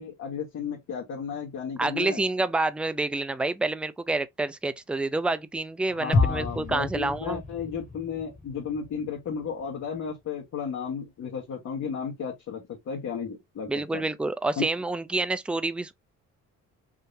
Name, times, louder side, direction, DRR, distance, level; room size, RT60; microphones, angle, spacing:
voice 1, 0.0-2.2 5.9-14.0 14.6-14.7, left 6 dB, 60° left, 1.2 m, -34 dB
voice 2, 1.8-7.4 13.7-15.9, right 2 dB, 5° right, 0.3 m, -28 dB
sound 1, 6.1-10.1 10.4-10.5, left 3 dB, 30° left, 1.4 m, -30 dB
3.7 x 2.7 x 2.5 m
cardioid pair, 90°, 30 cm